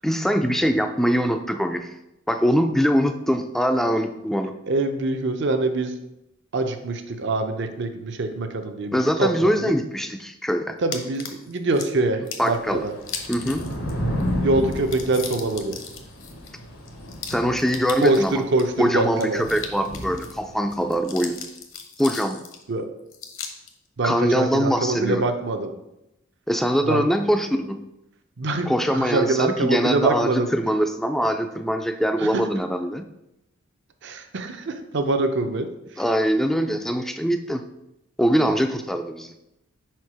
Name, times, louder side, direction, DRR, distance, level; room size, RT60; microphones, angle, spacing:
voice 1, 0.0-1.9 2.3-4.5 8.9-10.8 12.4-12.8 13.3-13.6 17.3-18.5 18.8-21.4 22.0-22.4 24.0-25.3 26.5-27.8 28.7-33.0 36.0-37.7 38.2-39.3, equal, ahead, 7 dB, 0.3 m, -23 dB
voice 2, 4.7-5.9 6.5-9.7 10.8-12.9 14.4-15.8 18.0-19.4 22.7-22.9 24.0-25.8 26.8-27.1 28.4-30.5 32.3-32.4 34.0-35.7, right 2 dB, 55° right, 7 dB, 0.6 m, -24 dB
sound 1, 10.9-11.9 12.3-12.6 13.0-13.9 14.2-14.3 14.6-18.6 19.1-20.4 20.7-22.6 23.1-23.7, left 6 dB, 65° left, 0.9 m, -37 dB
Thunder / Rain, 12.6-20.9, equal, 90° left, 1.3 m, -32 dB
5.0 x 4.5 x 4.7 m, 0.88 s
head